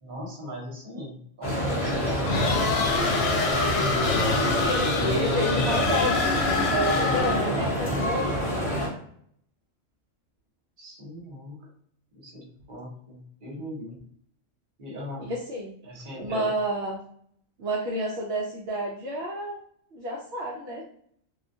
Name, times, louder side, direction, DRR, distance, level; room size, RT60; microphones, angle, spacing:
voice 1, 0.0-3.4 3.6-4.6 10.8-11.7 12.1-14.0 14.8-15.3 15.8-16.5, equal, 45° right, -3 dB, 1.0 m, -40 dB
sound 1, 1.4-8.9, equal, 35° left, 0.7 m, -27 dB
sound 2, 2.2-7.6, left 3 dB, 85° left, 1.0 m, -25 dB
voice 2, 4.6-8.9 15.2-15.7 16.2-17.0 17.6-19.6 19.9-20.8, right 1 dB, 65° right, -2 dB, 0.7 m, -30 dB
2.4 x 2.2 x 2.5 m, 0.66 s
omnidirectional pair, 1.3 m